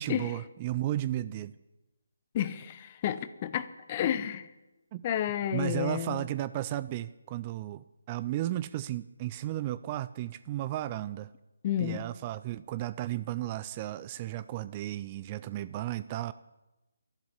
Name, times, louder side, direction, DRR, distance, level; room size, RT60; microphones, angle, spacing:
voice 1, 0.0-1.5 4.9-5.0 5.5-11.3 11.8-16.3, right 14 dB, 25° right, 15 dB, 0.4 m, -34 dB
voice 2, 2.3-4.5 5.0-6.3 11.6-12.0, left 10 dB, 30° left, 13 dB, 0.9 m, -31 dB
12.5 x 11.5 x 8.4 m, 1.0 s
figure-of-eight pair, 145°, 0 cm